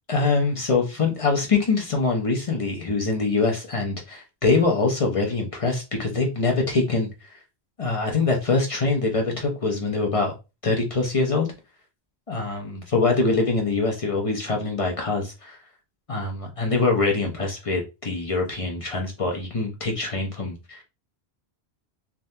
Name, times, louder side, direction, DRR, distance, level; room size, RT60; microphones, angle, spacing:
voice 1, 0.1-7.4 7.8-10.3 10.6-11.5 12.3-15.6 16.1-20.8, left 3 dB, 40° left, 1 dB, 0.6 m, -24 dB
3.3 x 2.3 x 2.6 m, 0.27 s
omnidirectional pair, 1.1 m